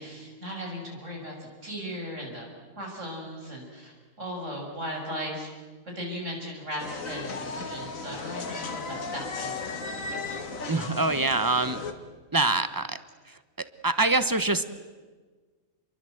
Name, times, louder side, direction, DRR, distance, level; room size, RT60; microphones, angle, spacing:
voice 1, 0.0-1.3 1.6-2.5 2.8-5.5 5.9-9.8, equal, 55° right, 0 dB, 7.0 m, -37 dB
sound 1, 6.8-11.9, left 4 dB, 65° left, 2.1 m, -35 dB
voice 2, 10.7-11.8 12.3-13.0 13.3-13.4 13.8-14.6, right 2 dB, 15° right, 12 dB, 1.0 m, -24 dB
28.5 x 23.0 x 7.9 m, 1.4 s
omnidirectional pair, 1.5 m